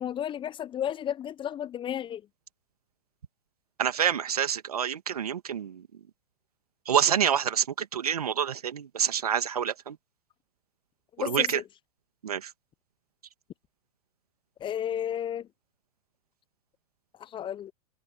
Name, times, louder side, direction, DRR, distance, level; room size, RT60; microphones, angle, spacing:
voice 1, 0.0-2.2 11.2-11.6 14.6-15.5 17.2-17.7, left 10 dB, 25° left, 0.9 m, -32 dB
voice 2, 3.8-5.8 6.9-10.0 11.2-11.6 12.2-12.5, right 8 dB, 80° right, 2.2 m, -27 dB
hypercardioid pair, 100°, 19 cm